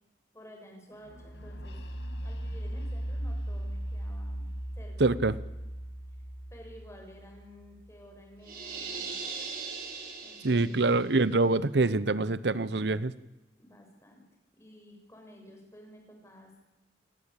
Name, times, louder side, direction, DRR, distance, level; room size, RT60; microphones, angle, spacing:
voice 1, 0.3-1.8 2.2-4.5 4.7-5.2 6.5-9.2 10.2-10.8 13.6-14.2 14.5-16.6, equal, 15° left, 2 dB, 6.4 m, -52 dB
sound 1, 1.0-8.8, right 1 dB, 75° left, 2.3 m, -38 dB
voice 2, 5.0-5.3 10.4-13.1, right 3 dB, 80° right, 17 dB, 0.9 m, -25 dB
sound 2, 8.4-11.0, right 5 dB, 50° right, 6.2 m, -39 dB
28.5 x 17.5 x 8.5 m, 1.0 s
head